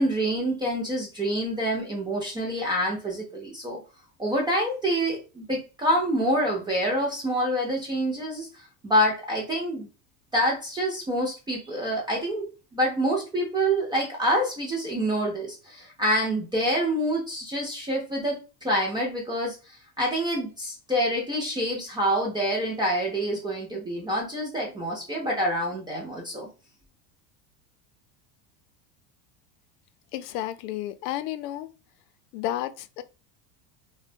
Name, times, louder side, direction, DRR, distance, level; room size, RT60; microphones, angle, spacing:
voice 1, 0.0-3.8 4.2-8.5 8.8-9.9 10.3-19.6 20.0-26.5, equal, 10° right, 0.3 m, -27 dB
voice 2, 30.1-31.7 32.3-33.0, left 13 dB, 75° left, 0.5 m, -32 dB
2.6 x 2.2 x 2.6 m
supercardioid pair, 130°, 48 cm